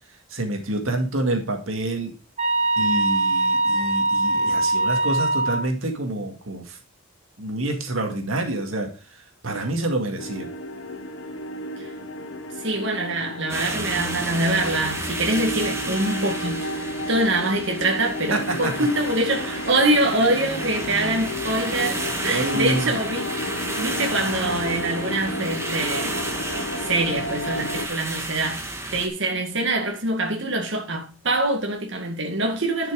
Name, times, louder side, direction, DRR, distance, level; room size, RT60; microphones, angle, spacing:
voice 1, 0.3-2.1 2.8-6.8 7.4-10.5 18.3-18.9 22.3-23.0, right 1 dB, 80° right, 2.1 m, -27 dB
sound 1, 2.4-5.6, right 2 dB, 30° right, 1.2 m, -22 dB
sound 2, 10.2-27.9, left 1 dB, 70° left, 1.4 m, -32 dB
voice 2, 12.6-16.7 17.1-23.3 23.8-26.2 26.8-32.9, right 2 dB, 60° right, 2.0 m, -24 dB
sound 3, 13.5-29.1, right 2 dB, 15° right, 1.6 m, -32 dB
10.5 x 6.1 x 4.8 m
head